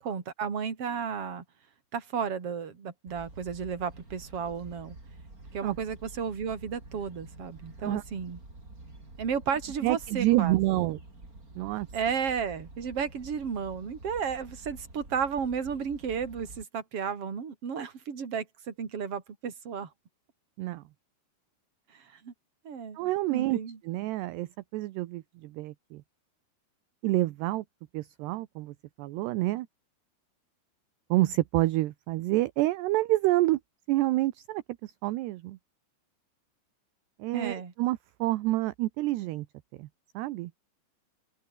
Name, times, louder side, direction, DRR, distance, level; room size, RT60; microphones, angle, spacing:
voice 1, 0.0-1.4 1.9-5.0 5.5-8.4 9.2-10.6 11.9-19.9 21.9-22.3 22.6-23.0 23.3-23.8 37.3-37.7, right 6 dB, 35° right, 3.6 m, -33 dB
sound 1, 3.1-16.7, right 2 dB, 15° right, 5.8 m, -48 dB
voice 2, 9.8-11.0 11.6-11.9 20.6-20.8 23.0-23.6 23.8-26.0 27.0-27.6 27.9-29.7 31.1-33.6 33.9-35.6 37.2-39.5 39.8-39.9 40.1-40.5, right 17 dB, 75° right, 2.6 m, -28 dB
open air
omnidirectional pair, 5.7 m